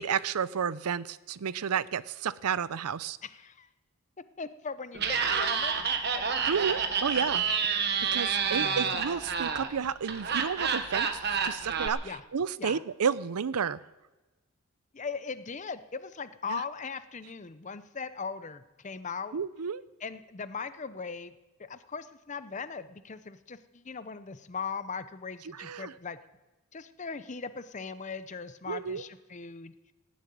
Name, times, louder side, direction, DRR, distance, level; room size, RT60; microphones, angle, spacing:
voice 1, 0.0-3.2 6.5-7.5 8.0-13.8 16.5-16.6 19.3-19.8 25.5-25.9 28.7-29.0, right 7 dB, 90° right, 18 dB, 0.5 m, -31 dB
voice 2, 3.2-3.7 4.4-5.8 6.0-6.4 8.3-8.9 12.0-12.2 12.6-12.8 14.9-19.4 20.0-21.3 21.6-26.2 26.7-29.7, left 5 dB, 35° left, 13 dB, 0.6 m, -39 dB
Laughter, 4.9-11.9, right 6 dB, 50° right, 1.2 m, -29 dB
17.5 x 7.6 x 9.2 m, 1.2 s
head